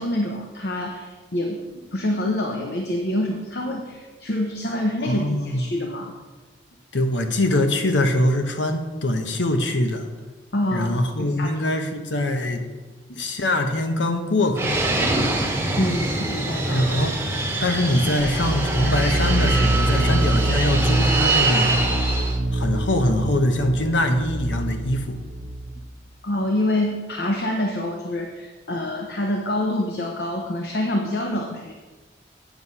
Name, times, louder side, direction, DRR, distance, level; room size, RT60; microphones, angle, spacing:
voice 1, 0.0-1.6 1.9-6.1 10.5-11.6 15.8-16.9 26.2-31.7, left 1 dB, 65° left, 2 dB, 0.9 m, -26 dB
voice 2, 5.1-5.7 6.9-10.1 10.7-12.6 13.2-14.8 16.7-17.2 17.6-21.7 22.5-25.2, left 1 dB, 90° left, 6 dB, 1.1 m, -23 dB
Fixed-wing aircraft airplane, 14.6-22.4, right 2 dB, 10° right, 1.0 m, -24 dB
sound 1, 18.2-25.8, right 1 dB, 50° right, 1.0 m, -24 dB
9.4 x 6.3 x 5.5 m, 1.3 s
head